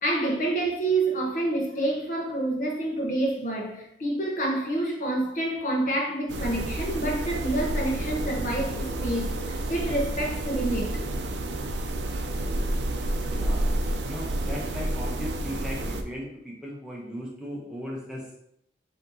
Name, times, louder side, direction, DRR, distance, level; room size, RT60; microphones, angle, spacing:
voice 1, 0.0-11.0, right 1 dB, 45° left, 0.9 m, -28 dB
sound 1, 6.3-16.0, right 1 dB, 75° right, 0.5 m, -30 dB
voice 2, 13.3-13.7 14.0-18.3, equal, 5° right, 0.8 m, -37 dB
5.7 x 2.8 x 2.7 m
head